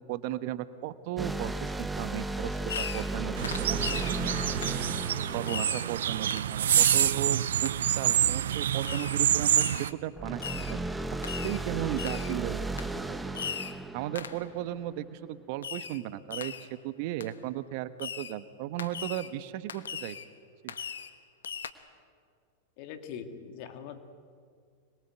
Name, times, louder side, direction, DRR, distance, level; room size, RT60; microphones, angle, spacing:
voice 1, 0.0-3.8 4.0-4.7 5.3-10.4 10.7-10.8 11.4-12.6 13.1-13.2 13.9-20.2 20.6-20.8, right 13 dB, 55° right, 13 dB, 1.2 m, -36 dB
sound 1, 1.2-6.6 10.1-14.9, right 2 dB, 5° right, 1.3 m, -35 dB
Fireworks, 2.7-3.2 3.4-4.2 4.6-4.8 5.5-5.9 6.3-6.5 6.8-7.2 7.6-7.8 8.8-9.2 9.6-9.9 10.4-10.8 11.2-11.6 12.0-12.3 12.8-12.9 13.3-13.8 14.1-14.4 15.6-16.0 16.3-16.7 17.2-17.3 18.0-18.4 18.8-19.3 19.7-20.3 20.7-21.1 21.4-21.7, left 7 dB, 85° left, 1.2 m, -38 dB
sound 2, 3.4-9.9, right 10 dB, 75° right, 0.7 m, -27 dB
voice 2, 22.8-24.0, left 7 dB, 55° left, 7 dB, 2.5 m, -42 dB
26.0 x 22.0 x 8.1 m, 2.1 s
hypercardioid pair, 100°, 0 cm